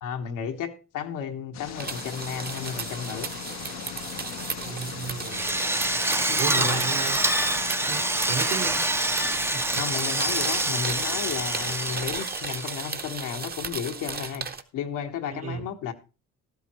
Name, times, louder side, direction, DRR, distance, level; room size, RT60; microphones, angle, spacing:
voice 1, 0.0-3.3 6.3-6.8 9.8-15.9, left 7 dB, 85° left, 1.2 m, -33 dB
sound 1, 1.5-12.2, left 12 dB, 65° left, 0.5 m, -40 dB
sound 2, 1.7-14.6, right 5 dB, 30° right, 0.9 m, -36 dB
voice 2, 4.6-5.6 6.4-7.3 7.9-8.8 9.5-9.8 15.3-15.6, right 6 dB, 55° right, 1.5 m, -34 dB
Drill, 5.3-13.2, right 1 dB, 10° right, 0.5 m, -26 dB
12.5 x 12.0 x 3.0 m
cardioid pair, 90°, 30 cm